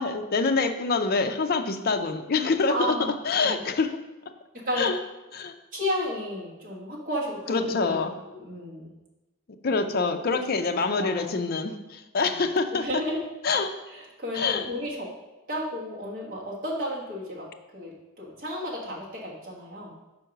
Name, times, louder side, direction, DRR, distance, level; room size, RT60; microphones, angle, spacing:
voice 1, 0.0-2.9 3.2-4.0 4.8-5.0 5.3-5.5 7.5-8.1 9.6-12.9 13.4-13.7 14.3-14.7, left 4 dB, 45° left, 7 dB, 0.5 m, -25 dB
voice 2, 2.7-3.1 3.4-3.6 4.6-4.9 5.7-8.0 8.2-8.9 9.6-9.9 10.3-10.4 11.0-11.3 12.2-12.4 12.7-13.2 13.9-15.1 15.5-17.5 17.7-19.9, left 1 dB, 40° right, -5 dB, 1.3 m, -33 dB
5.2 x 4.6 x 5.7 m, 1.1 s
head